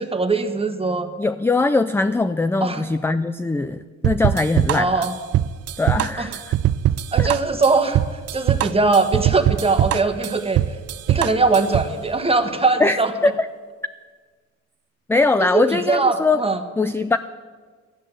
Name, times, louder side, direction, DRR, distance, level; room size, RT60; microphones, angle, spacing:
voice 1, 0.0-1.1 2.6-2.9 4.7-5.1 6.2-6.3 7.1-8.0 8.3-10.6 11.1-13.1 15.5-16.6, right 3 dB, 20° right, 6 dB, 1.3 m, -21 dB
voice 2, 1.2-5.1 5.8-6.5 7.2-7.3 12.8-13.5 15.1-16.4 16.8-17.2, left 3 dB, 10° left, 11 dB, 0.3 m, -21 dB
sound 1, 4.0-12.0, right 11 dB, 55° right, 0.4 m, -21 dB
12.0 x 10.0 x 7.5 m, 1.5 s
cardioid pair, 90°, 30 cm